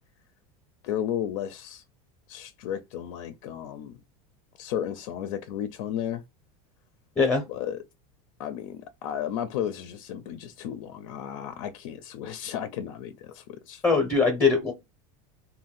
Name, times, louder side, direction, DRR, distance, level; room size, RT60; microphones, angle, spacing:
voice 1, 0.8-1.8 2.3-4.0 4.6-6.2 7.5-7.8 8.4-13.8, left 10 dB, 70° left, 0.4 m, -33 dB
voice 2, 13.8-14.7, left 4 dB, 10° left, 0.6 m, -21 dB
2.5 x 2.2 x 3.6 m
supercardioid pair, 160°, 18 cm